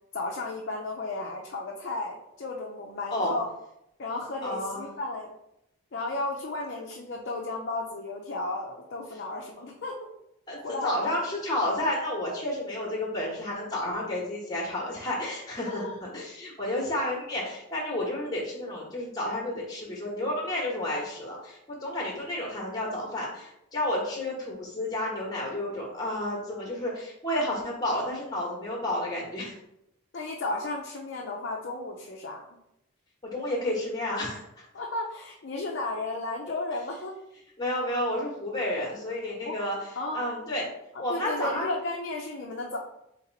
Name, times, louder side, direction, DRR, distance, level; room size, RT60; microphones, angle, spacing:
voice 1, 0.1-3.5 4.0-5.3 5.9-10.2 10.6-11.1 15.7-15.9 30.1-32.6 34.7-37.1 39.5-39.6 40.0-40.3 40.9-42.8, left 2 dB, 55° left, 0 dB, 0.5 m, -34 dB
voice 2, 4.4-4.8 10.5-29.6 33.2-34.7 37.6-39.9 40.1-40.7 41.0-41.7, left 1 dB, 20° left, -3 dB, 1.0 m, -31 dB
3.2 x 2.8 x 3.9 m, 0.82 s
head